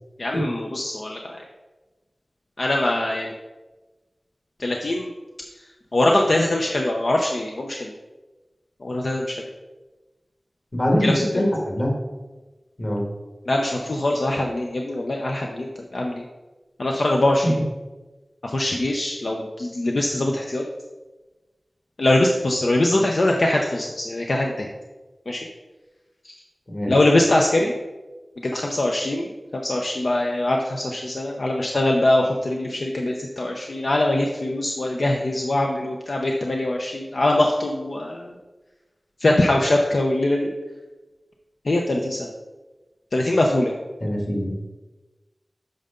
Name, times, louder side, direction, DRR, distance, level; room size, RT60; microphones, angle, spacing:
voice 1, 0.2-1.4 2.6-3.3 4.6-5.1 5.9-7.9 8.8-9.4 11.0-11.3 13.5-16.3 16.8-17.5 18.4-20.6 22.0-24.7 25.3-25.5 26.2-26.3 26.9-27.7 28.4-38.3 39.2-40.5 41.7-42.3 43.1-43.7, left 1 dB, 70° left, 0 dB, 0.7 m, -22 dB
voice 2, 10.7-11.9 12.8-13.0 26.7-26.9 44.0-44.5, equal, 40° left, -1 dB, 2.2 m, -23 dB
9.0 x 5.5 x 3.8 m, 1.2 s
wide cardioid pair, 70°, 0 cm